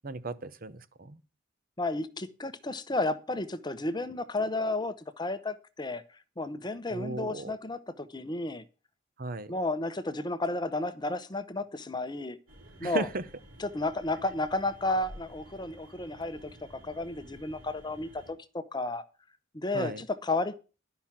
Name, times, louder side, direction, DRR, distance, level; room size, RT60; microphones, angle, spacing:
voice 1, 0.0-1.2 6.9-7.5 9.2-9.5 12.8-13.2 19.7-20.0, right 3 dB, 50° right, 0.8 m, -35 dB
voice 2, 1.8-6.0 6.4-8.6 9.5-12.4 12.8-13.1 13.6-16.5 16.8-19.0 19.5-20.6, left 2 dB, 20° left, 0.8 m, -32 dB
sound 1, 12.5-18.3, equal, 80° right, 4.2 m, -52 dB
11.5 x 5.9 x 7.4 m
head